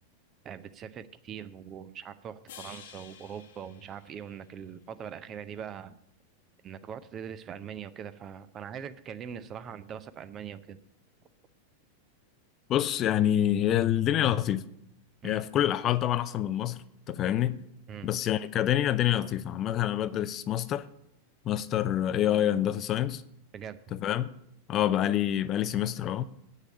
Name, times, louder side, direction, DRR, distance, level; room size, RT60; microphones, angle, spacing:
voice 1, 0.4-6.0 6.6-10.8 15.2-15.5 17.9-18.2 23.5-23.8, right 8 dB, 30° right, 0.6 m, -42 dB
sound 1, 2.5-4.8, left 8 dB, 55° left, 1.1 m, -51 dB
voice 2, 12.7-14.6 15.2-17.6 18.0-20.9 21.5-23.2 23.9-24.3 24.7-26.2, left 11 dB, 30° left, 0.5 m, -27 dB
8.4 x 6.6 x 8.4 m
figure-of-eight pair, 90°, 0 cm